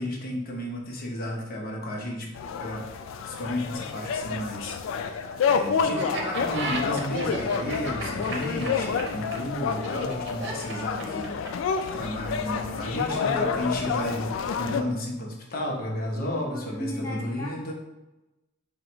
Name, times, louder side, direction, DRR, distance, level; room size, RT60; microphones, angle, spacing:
voice 1, 0.0-2.3 2.6-2.8 3.2-11.3 11.6-14.3 14.6-17.7, left 1 dB, 50° left, -1 dB, 0.7 m, -32 dB
sound 1, 2.3-14.8, left 6 dB, 80° left, 0.3 m, -29 dB
Laughter, 5.9-11.7, right 3 dB, 60° right, 0.7 m, -34 dB
voice 2, 10.9-11.2 13.1-13.5 16.1-17.7, left 1 dB, 15° left, -4 dB, 0.6 m, -36 dB
3.8 x 2.2 x 4.4 m, 1.0 s
head